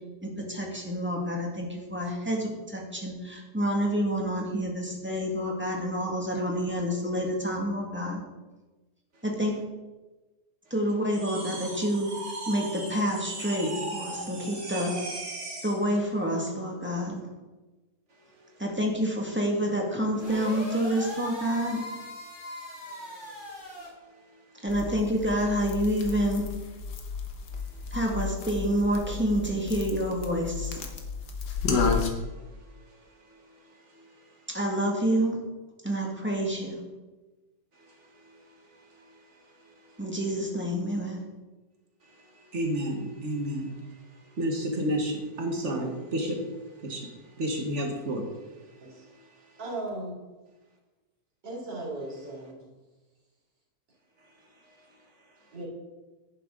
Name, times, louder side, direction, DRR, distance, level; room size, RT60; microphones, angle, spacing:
voice 1, 0.2-8.2 9.2-9.5 10.7-12.2 12.5-14.9 15.6-17.3 18.6-21.8 24.6-26.5 27.9-30.9 34.5-35.4 35.8-36.8 40.0-41.2, equal, 5° right, -1 dB, 1.9 m, -28 dB
sound 1, 11.1-15.8, right 2 dB, 65° right, 2.6 m, -38 dB
sound 2, 20.1-23.9, equal, 30° left, 2.8 m, -39 dB
sound 3, 24.7-32.1, left 5 dB, 80° left, 1.8 m, -32 dB
voice 2, 42.5-43.8 44.4-46.4 46.8-47.1 47.4-48.3, equal, 45° right, 2 dB, 1.7 m, -30 dB
voice 3, 49.6-50.2 51.4-52.6 55.5-55.7, right 2 dB, 90° right, -4 dB, 3.7 m, -37 dB
11.0 x 10.0 x 3.8 m, 1.2 s
omnidirectional pair, 1.8 m